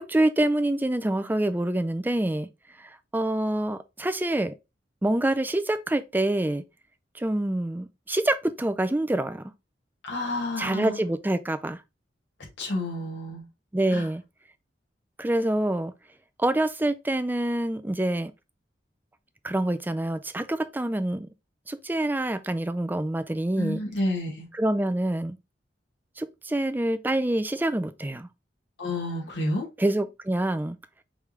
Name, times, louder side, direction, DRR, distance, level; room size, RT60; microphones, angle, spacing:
voice 1, 0.0-2.5 2.8-4.5 5.0-6.6 7.1-9.5 10.6-11.8 13.7-14.2 15.2-15.9 16.4-18.3 19.4-21.3 21.7-23.8 24.5-25.4 26.2-28.3 29.8-30.8, right 1 dB, 10° right, 0.4 m, -26 dB
voice 2, 10.0-11.0 12.6-13.4 13.9-14.1 23.6-24.5 28.8-29.7, left 1 dB, 75° left, 1.9 m, -30 dB
5.0 x 3.4 x 3.1 m
head